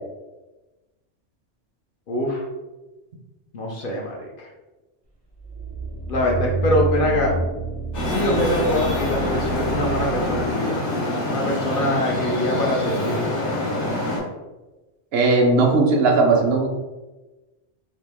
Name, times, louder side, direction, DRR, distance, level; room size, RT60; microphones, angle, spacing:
voice 1, 2.1-2.4 3.5-4.5 6.1-7.3 8.1-10.8 11.3-13.3, left 1 dB, 55° left, -2 dB, 0.7 m, -24 dB
sound 1, 5.4-10.5, right 3 dB, 30° right, 0.5 m, -28 dB
Traffic noise roadway noise, 7.9-14.2, left 1 dB, 85° left, 1.2 m, -25 dB
voice 2, 15.1-16.7, right 3 dB, 70° right, 1 dB, 0.8 m, -17 dB
2.9 x 2.6 x 3.3 m, 1.1 s
omnidirectional pair, 1.2 m